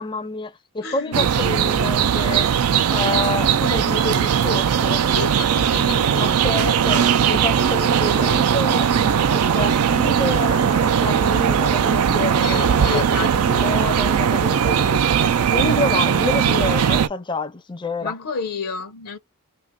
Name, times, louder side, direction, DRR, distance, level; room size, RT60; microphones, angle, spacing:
voice 1, 0.0-2.5 2.9-5.1 6.2-15.0 15.5-18.1, left 3 dB, 20° left, 0.4 m, -28 dB
voice 2, 0.8-1.2 5.1-6.4 12.4-13.3 18.0-19.2, left 6 dB, 75° left, 0.6 m, -30 dB
sound 1, 1.1-17.1, right 8 dB, 80° right, 0.4 m, -19 dB
2.7 x 2.5 x 3.6 m
head